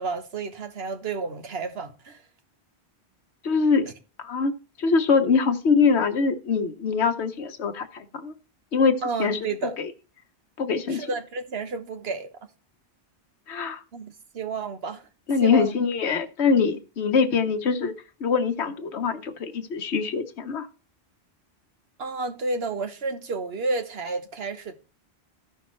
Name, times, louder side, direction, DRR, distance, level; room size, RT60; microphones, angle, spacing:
voice 1, 0.0-2.2 9.0-9.8 10.9-12.3 13.9-15.1 15.4-15.7 22.0-24.8, right 3 dB, 65° right, 1.3 m, -31 dB
voice 2, 3.4-3.9 4.2-4.5 4.8-8.3 8.7-9.4 9.8-9.9 10.6-11.1 13.5-13.8 15.3-17.9 18.2-20.7, left 5 dB, 80° left, 1.2 m, -23 dB
14.5 x 5.7 x 3.1 m
omnidirectional pair, 1.1 m